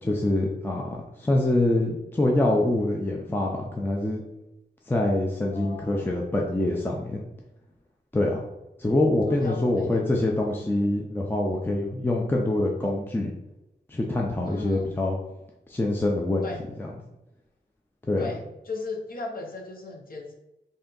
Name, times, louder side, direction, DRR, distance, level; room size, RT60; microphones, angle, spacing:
voice 1, 0.0-4.2 4.9-7.2 8.1-8.4 8.8-13.3 13.9-15.2 15.7-16.5 16.8-16.9 18.1-18.3, left 1 dB, 10° left, -1 dB, 0.4 m, -25 dB
voice 2, 5.5-6.2 9.3-10.3 10.6-10.7 14.5-15.0 16.4-16.6 18.2-20.3, left 3 dB, 55° left, 3 dB, 0.7 m, -37 dB
3.3 x 2.7 x 3.8 m, 0.95 s
wide cardioid pair, 100°, 18 cm